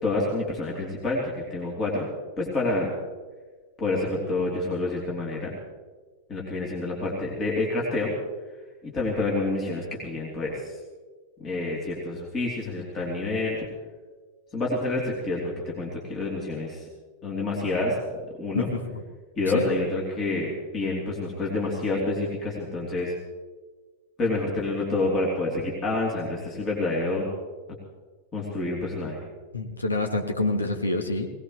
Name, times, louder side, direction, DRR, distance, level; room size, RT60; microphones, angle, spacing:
voice 1, 0.0-2.1 2.4-2.9 3.8-5.6 6.3-8.1 8.8-10.8 11.4-13.6 14.5-16.9 17.2-18.7 19.4-23.1 24.2-27.3 28.3-29.2, left 2 dB, 30° left, -3 dB, 3.2 m, -28 dB
voice 2, 29.5-31.3, left 2 dB, 80° left, 4 dB, 1.3 m, -26 dB
20.0 x 19.0 x 3.2 m, 1.4 s
figure-of-eight pair, 90°, 0 cm